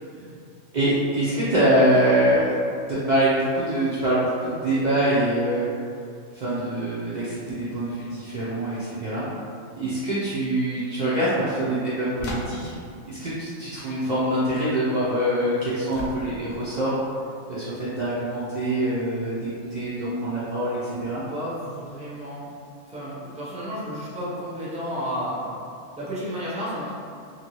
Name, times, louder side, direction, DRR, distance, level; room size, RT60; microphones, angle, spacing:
voice 1, 0.7-2.6 2.9-5.7 6.3-9.3 9.7-12.7 13.1-17.0 17.5-21.2, right 1 dB, 80° right, -10 dB, 0.4 m, -24 dB
sound 1, 12.2-12.9 15.9-16.6, left 1 dB, 65° left, 0.6 m, -35 dB
voice 2, 21.3-22.5 22.8-25.5 26.0-26.9, equal, 10° right, -8 dB, 0.4 m, -32 dB
2.7 x 2.6 x 3.0 m, 2.4 s
omnidirectional pair, 1.4 m